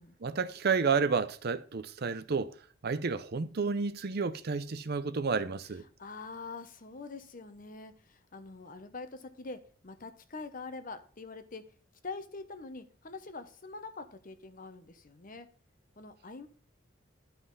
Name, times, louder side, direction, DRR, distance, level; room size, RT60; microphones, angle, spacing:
voice 1, 0.2-2.5 2.8-5.8, right 5 dB, 50° right, 0.6 m, -31 dB
voice 2, 6.0-11.6 12.0-15.5 16.0-16.5, left 3 dB, 40° left, 0.9 m, -44 dB
11.5 x 5.6 x 4.0 m
head